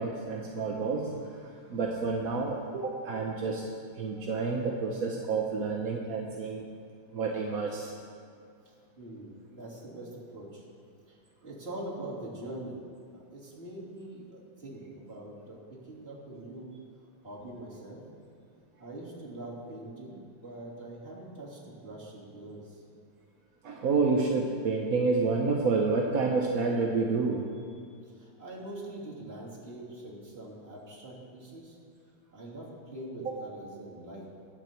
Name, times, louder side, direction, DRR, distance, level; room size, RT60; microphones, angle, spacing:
voice 1, 0.0-3.6 4.0-6.6 7.1-7.9 23.6-27.4 33.2-33.3, right 4 dB, 55° right, 0 dB, 1.1 m, -29 dB
voice 2, 8.6-10.6 11.1-11.2 11.4-12.8 13.1-16.7 17.2-18.0 18.8-22.8 28.1-31.8 32.3-34.3, right 1 dB, 25° right, -7 dB, 3.4 m, -43 dB
21.5 x 8.3 x 4.5 m, 2.2 s
omnidirectional pair, 2.4 m